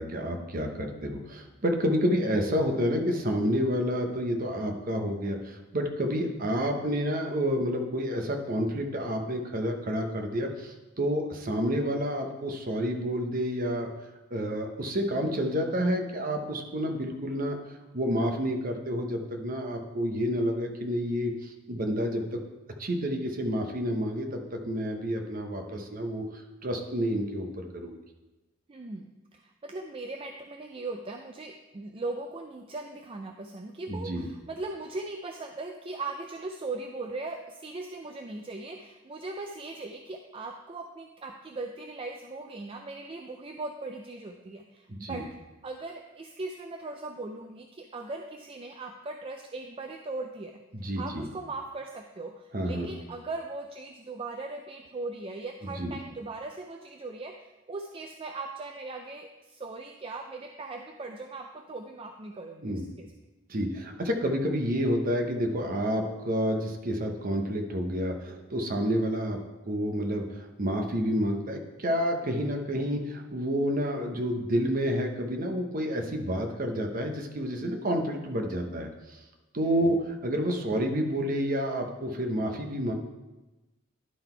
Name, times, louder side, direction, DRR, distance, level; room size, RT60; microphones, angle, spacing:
voice 1, 0.0-13.9 14.3-17.6 17.9-22.4 22.8-27.9 33.9-34.3 44.9-45.2 50.7-51.3 52.5-52.9 55.8-55.9 62.6-62.9 63.5-69.4 69.7-78.9 79.5-82.9, equal, 45° right, 3 dB, 0.9 m, -29 dB
voice 2, 28.7-45.3 45.6-50.6 51.0-63.1 79.8-80.0, right 3 dB, 30° right, 4 dB, 0.4 m, -39 dB
11.0 x 3.9 x 4.5 m, 1.1 s
head